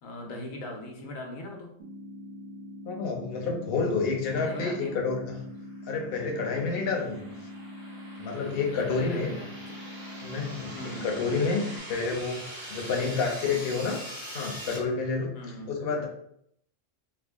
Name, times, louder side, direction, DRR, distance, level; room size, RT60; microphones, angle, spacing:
voice 1, 0.0-1.8 4.4-5.0 7.2-7.4 8.7-9.8 10.7-11.1 13.1-13.6 15.3-15.8, left 1 dB, 90° left, 1 dB, 1.2 m, -40 dB
sound 1, 1.8-11.8, left 1 dB, 60° right, 0.9 m, -43 dB
voice 2, 2.9-5.4 5.9-7.2 8.2-9.3 10.2-14.0 14.3-15.3 15.7-16.1, left 4 dB, 55° left, 0 dB, 0.8 m, -29 dB
sound 2, 5.8-14.8, right 1 dB, 20° right, 0.6 m, -43 dB
3.4 x 2.2 x 3.4 m, 0.72 s
omnidirectional pair, 1.3 m